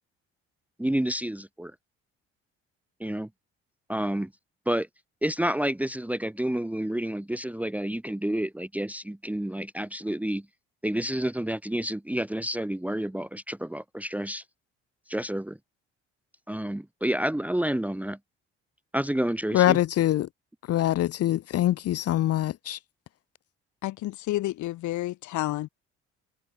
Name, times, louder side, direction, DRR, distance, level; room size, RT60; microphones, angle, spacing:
voice 1, 0.8-1.7 3.0-3.3 3.9-4.3 4.7-4.9 5.2-10.5 10.8-14.4 15.1-15.6 16.5-18.2 18.9-19.8, right 1 dB, 5° right, 1.3 m, -29 dB
voice 2, 19.5-20.3 20.7-22.8, left 13 dB, 55° left, 0.6 m, -24 dB
voice 3, 23.8-25.7, left 16 dB, 80° left, 2.8 m, -30 dB
supercardioid pair, 75°, 29 cm